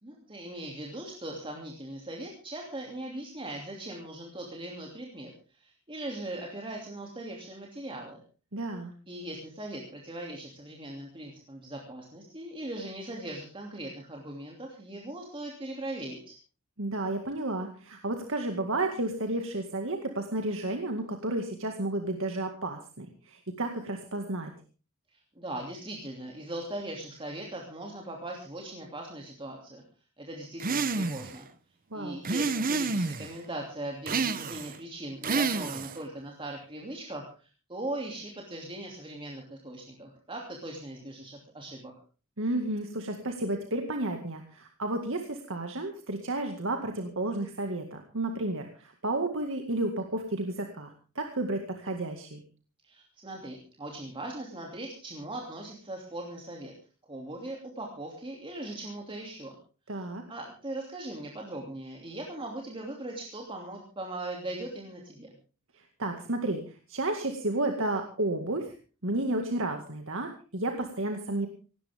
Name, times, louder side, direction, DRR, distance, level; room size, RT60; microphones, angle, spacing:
voice 1, 0.0-8.2 9.1-16.3 25.1-29.8 30.2-31.5 31.9-41.9 52.8-56.7 57.1-59.6 59.9-65.3, right 1 dB, 25° right, 0 dB, 2.9 m, -40 dB
voice 2, 8.5-8.9 16.8-24.5 31.9-32.2 42.4-52.4 59.9-60.2 66.0-66.6 66.9-68.7 69.0-71.5, right 2 dB, 60° right, 4 dB, 2.1 m, -32 dB
sound 1, 30.6-31.4 32.2-33.3 34.1-34.8 35.2-36.0, right 4 dB, 40° right, 0.9 m, -29 dB
18.0 x 17.5 x 3.7 m, 0.36 s
head